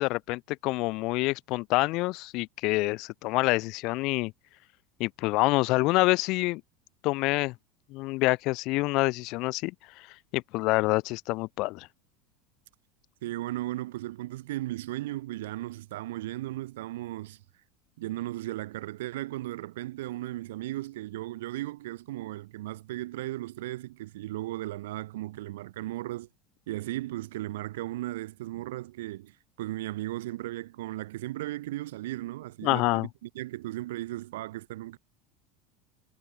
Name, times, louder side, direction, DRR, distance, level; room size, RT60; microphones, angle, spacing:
voice 1, 0.0-4.3 5.0-6.6 7.0-7.5 7.9-9.7 10.3-11.9 32.6-33.1, left 22 dB, 55° left, 2.7 m, -27 dB
voice 2, 13.2-17.4 18.0-26.3 26.7-35.0, right 16 dB, 70° right, 5.3 m, -36 dB
hypercardioid pair, 80°, 0 cm